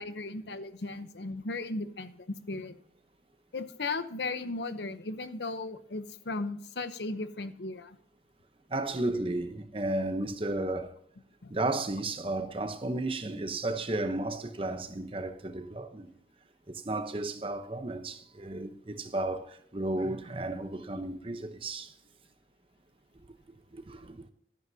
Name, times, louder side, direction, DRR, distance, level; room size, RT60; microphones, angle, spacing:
voice 1, 0.0-2.7 3.5-8.0 11.4-11.5, left 3 dB, 75° left, 0.8 m, -36 dB
voice 2, 8.7-10.9 11.5-16.1 16.7-21.9 23.5-24.3, right 2 dB, 30° right, 0.8 m, -33 dB
13.0 x 11.0 x 2.7 m
head